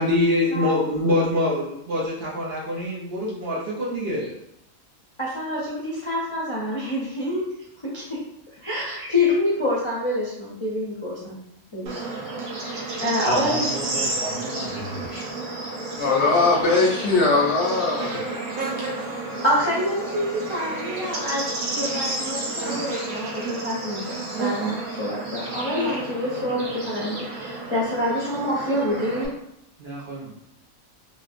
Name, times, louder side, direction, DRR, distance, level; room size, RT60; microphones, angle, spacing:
voice 1, 0.0-4.3 29.8-30.3, left 1 dB, 55° right, -5 dB, 0.8 m, -24 dB
voice 2, 5.2-7.4 7.8-8.2 8.6-11.4 11.7-12.0 12.4-13.6 19.4-24.0 24.4-29.3, left 1 dB, 35° left, -7 dB, 0.5 m, -27 dB
Bird / Insect, 11.9-29.3, right 2 dB, 85° right, 1.2 m, -31 dB
voice 3, 13.2-15.3, right 1 dB, 25° right, -7 dB, 0.8 m, -31 dB
voice 4, 16.0-18.4, left 3 dB, 65° left, -2 dB, 0.8 m, -20 dB
3.0 x 2.9 x 2.4 m, 0.78 s
omnidirectional pair, 1.4 m